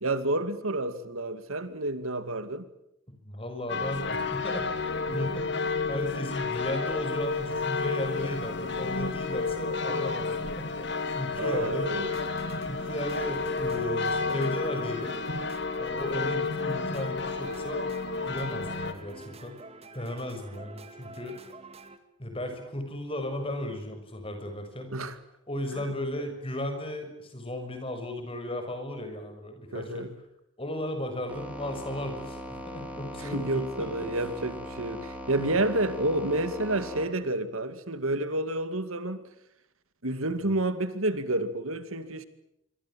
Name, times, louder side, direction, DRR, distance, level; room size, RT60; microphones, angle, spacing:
voice 1, 0.0-2.6 5.1-5.2 11.4-12.1 24.9-25.2 29.7-30.1 33.2-39.3 40.0-42.2, right 2 dB, 75° right, 2.4 m, -30 dB
voice 2, 3.2-4.7 5.1-11.9 12.6-15.1 15.8-17.9 18.3-19.5 19.9-21.4 22.2-24.9 25.5-30.0 30.6-34.1 35.4-35.6, left 1 dB, 25° left, 6.5 m, -35 dB
sound 1, 3.7-18.9, left 4 dB, 55° left, 2.6 m, -31 dB
sound 2, 12.0-22.0, right 2 dB, 30° right, 2.5 m, -48 dB
sound 3, 31.3-37.1, equal, 5° right, 5.0 m, -40 dB
26.5 x 25.0 x 7.6 m
head